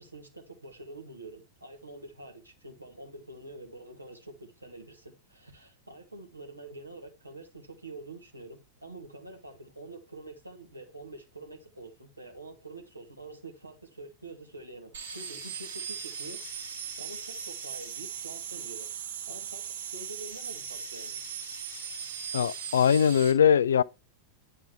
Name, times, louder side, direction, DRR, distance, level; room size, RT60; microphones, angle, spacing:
voice 1, 0.0-16.7 17.0-18.9 19.3-19.6 19.9-21.2, right 2 dB, 85° right, 2.1 m, -46 dB
sound 1, 14.9-23.3, right 7 dB, 65° right, 2.5 m, -38 dB
voice 2, 22.3-23.8, left 8 dB, 65° left, 0.4 m, -21 dB
10.5 x 4.4 x 3.4 m
figure-of-eight pair, 90°, 0 cm